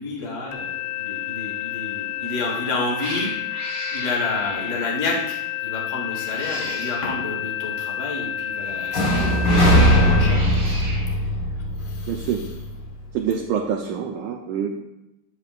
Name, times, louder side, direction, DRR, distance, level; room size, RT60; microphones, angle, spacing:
voice 1, 0.0-10.8 11.1-11.3 11.8-12.6, left 2 dB, 75° left, -1 dB, 0.6 m, -30 dB
sound 1, 0.5-10.2, left 11 dB, 90° left, 1.5 m, -30 dB
Cat, 2.2-2.5 2.9-5.0 6.1-7.2 8.5-11.1, right 1 dB, 30° right, 1.7 m, -35 dB
sound 2, 8.9-12.8, equal, 55° left, 1.2 m, -19 dB
voice 2, 12.1-12.4 13.1-14.7, right 8 dB, 75° right, 1 dB, 2.0 m, -26 dB
10.0 x 9.5 x 2.5 m, 0.90 s
omnidirectional pair, 4.0 m